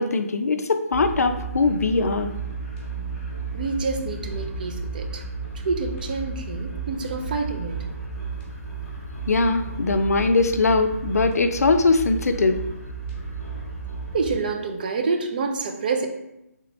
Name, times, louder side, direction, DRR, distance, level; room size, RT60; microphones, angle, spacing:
voice 1, 0.0-2.3 9.3-12.6, left 3 dB, 75° left, 8 dB, 0.4 m, -21 dB
sound 1, 0.9-14.4, right 4 dB, 10° left, 0.8 m, -33 dB
voice 2, 3.5-5.2 5.6-7.8 14.1-16.1, right 4 dB, 35° right, 4 dB, 0.3 m, -27 dB
3.3 x 2.8 x 3.1 m, 0.88 s
figure-of-eight pair, 155°, 8 cm